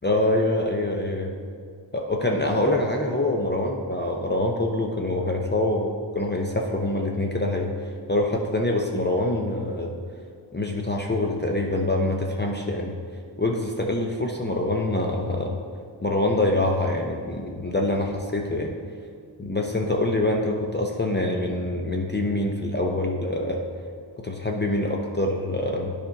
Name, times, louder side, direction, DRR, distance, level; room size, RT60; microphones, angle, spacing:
voice 1, 0.0-1.3 1.9-7.7 8.1-9.9 10.5-12.9 13.4-15.6 16.0-18.7 19.4-23.7 24.2-25.9, left 1 dB, 25° left, 1 dB, 0.7 m, -25 dB
9.9 x 5.1 x 3.9 m, 2.1 s
wide cardioid pair, 65°, 46 cm